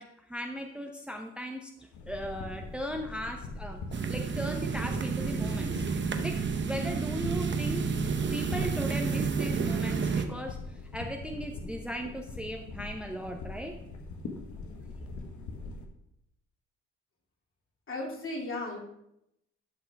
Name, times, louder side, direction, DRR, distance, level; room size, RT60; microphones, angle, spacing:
voice 1, 0.0-1.7 2.1-3.8 4.1-5.8 6.2-7.9 8.3-13.8, equal, 5° right, 3 dB, 0.7 m, -37 dB
sound 1, 1.9-15.9, left 3 dB, 75° left, 1.4 m, -42 dB
sound 2, 3.9-10.3, right 5 dB, 40° right, 0.8 m, -30 dB
voice 2, 17.9-18.8, left 2 dB, 45° left, 0 dB, 2.5 m, -35 dB
11.5 x 5.6 x 3.5 m, 0.79 s
cardioid pair, 90°, 30 cm